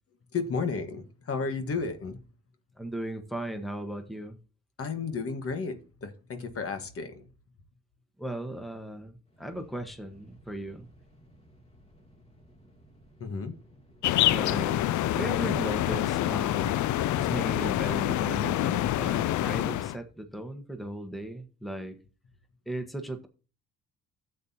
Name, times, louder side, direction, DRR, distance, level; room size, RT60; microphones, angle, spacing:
voice 1, 0.3-2.2 4.8-7.3 13.2-13.6, left 4 dB, 50° left, 8 dB, 1.5 m, -33 dB
voice 2, 2.8-4.4 8.2-10.9 14.3-16.8 17.1-22.0 22.7-23.3, right 1 dB, ahead, 6 dB, 1.2 m, -37 dB
sound 1, 9.3-19.1, equal, 20° left, 2.7 m, -58 dB
sound 2, 14.0-20.0, left 13 dB, 75° left, 0.5 m, -26 dB
12.0 x 8.0 x 2.8 m, 0.35 s
cardioid pair, 90°, 30 cm